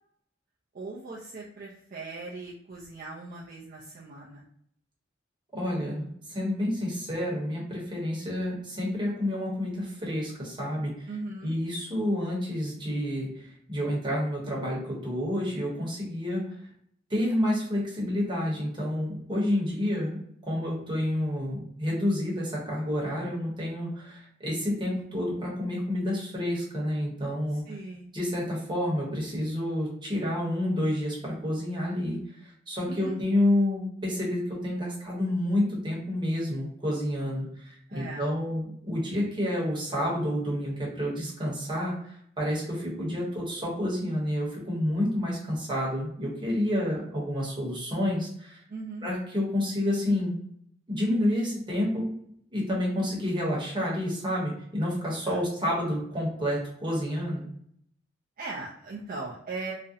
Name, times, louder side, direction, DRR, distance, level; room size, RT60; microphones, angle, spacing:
voice 1, 0.7-4.4 11.1-11.6 27.5-28.1 32.9-33.2 37.9-38.3 48.7-49.1 55.3-55.5 58.4-59.7, right 3 dB, 45° right, -5 dB, 0.4 m, -39 dB
voice 2, 5.5-11.1 11.4-16.4 17.1-20.2 20.5-27.6 28.1-48.6 49.0-50.3 50.9-52.1 52.5-57.4, left 1 dB, 25° right, -4 dB, 0.9 m, -29 dB
2.4 x 2.0 x 2.6 m, 0.68 s
head